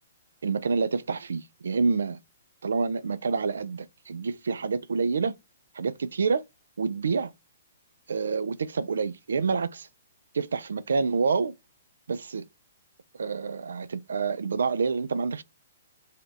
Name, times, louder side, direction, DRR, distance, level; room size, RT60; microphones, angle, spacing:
voice 1, 0.4-2.2 2.6-5.4 5.7-6.4 6.8-7.3 8.1-9.9 10.3-11.5 12.1-12.4 13.2-15.4, right 5 dB, 70° right, 0.4 m, -27 dB
3.5 x 2.6 x 3.8 m
figure-of-eight pair, 120°, 0 cm